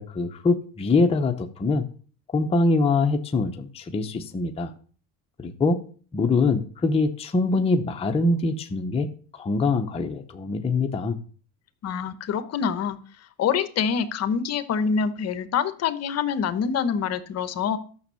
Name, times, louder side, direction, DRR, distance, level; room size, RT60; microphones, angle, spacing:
voice 1, 0.0-1.9 2.3-4.7 5.4-5.8 6.1-9.1 9.3-11.2, left 3 dB, 15° left, 4 dB, 0.8 m, -23 dB
voice 2, 11.8-13.0 13.4-17.8, left 7 dB, 40° left, 12 dB, 1.0 m, -25 dB
12.5 x 6.3 x 7.0 m, 0.43 s
cardioid pair, 145°, 40 cm